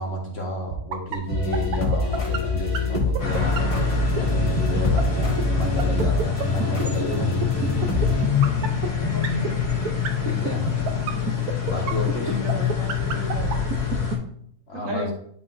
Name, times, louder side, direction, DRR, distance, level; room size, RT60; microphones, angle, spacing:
voice 1, 0.0-3.7 4.2-7.4 10.2-10.7 11.6-12.2 14.7-15.1, equal, 45° left, 0 dB, 1.3 m, -31 dB
sound 1, 0.7-14.1, right 9 dB, 80° right, 1.2 m, -27 dB
sound 2, 1.3-8.2, left 1 dB, 20° left, 1.3 m, -25 dB
sound 3, 3.2-14.2, left 8 dB, 90° left, 1.9 m, -25 dB
voice 2, 9.1-9.7 12.2-13.5 14.7-15.1, equal, 60° right, 0 dB, 1.6 m, -33 dB
10.5 x 3.9 x 2.5 m, 0.64 s
omnidirectional pair, 1.6 m